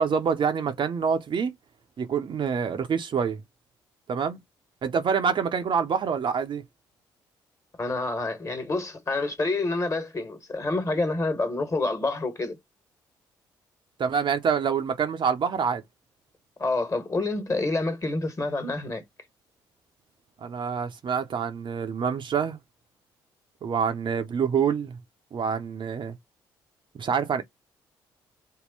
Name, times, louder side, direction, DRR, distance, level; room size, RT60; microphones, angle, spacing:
voice 1, 0.0-1.6 2.0-3.4 4.1-4.4 4.8-6.6 14.0-15.8 20.4-22.6 23.6-25.0 25.3-26.2 26.9-27.4, right 6 dB, 50° right, 0.7 m, -26 dB
voice 2, 7.8-12.6 16.6-19.0, left 2 dB, 30° left, 1.5 m, -28 dB
3.7 x 2.1 x 3.9 m
hypercardioid pair, 45°, 11 cm